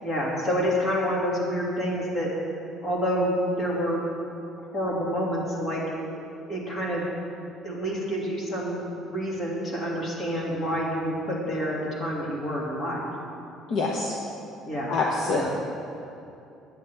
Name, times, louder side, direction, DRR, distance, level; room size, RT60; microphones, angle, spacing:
voice 1, 0.0-2.3 2.8-4.0 4.7-5.8 6.5-7.0 7.6-13.0 14.7-15.0 15.3-15.5, equal, 30° left, -4 dB, 2.4 m, -28 dB
voice 2, 13.7-14.1 14.9-15.5, left 3 dB, 50° left, -2 dB, 1.0 m, -26 dB
16.0 x 9.2 x 3.5 m, 2.7 s
cardioid pair, 170°, 0 cm